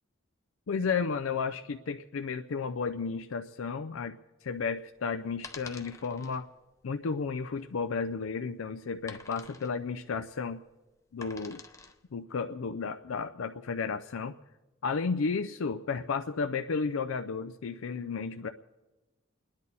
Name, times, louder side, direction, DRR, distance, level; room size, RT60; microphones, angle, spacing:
voice 1, 0.7-6.5 6.8-10.6 11.1-11.6 12.1-14.3 14.8-18.5, left 5 dB, 85° left, 8 dB, 0.5 m, -33 dB
sound 1, 4.5-12.1, left 3 dB, 15° left, 0.6 m, -49 dB
29.5 x 10.5 x 4.1 m, 1.1 s
head